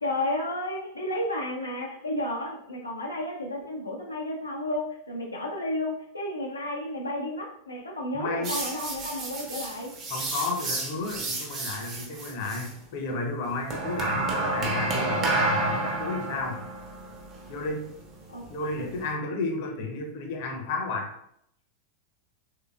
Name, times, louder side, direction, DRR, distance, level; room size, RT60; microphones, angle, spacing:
voice 1, 0.0-9.9 18.3-18.4 18.8-18.9, left 1 dB, 80° left, -2 dB, 0.6 m, -32 dB
voice 2, 8.1-8.6 10.1-16.6 17.5-17.9 18.5-21.1, left 3 dB, 50° left, 3 dB, 0.7 m, -32 dB
sound 1, 8.4-12.7 13.7-19.1, right 2 dB, 30° right, 0.9 m, -31 dB
3.6 x 3.3 x 2.4 m, 0.71 s
figure-of-eight pair, 90°, 0 cm